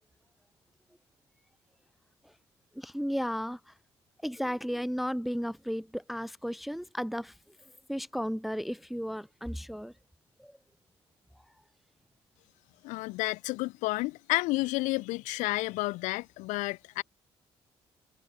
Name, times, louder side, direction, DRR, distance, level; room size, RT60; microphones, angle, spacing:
voice 1, 2.7-3.7 4.2-7.3 7.9-9.9 10.4-10.6, equal, ahead, 0.8 m, -34 dB
voice 2, 12.8-17.0, left 22 dB, 65° left, 1.0 m, -31 dB
figure-of-eight pair, 45°, 14 cm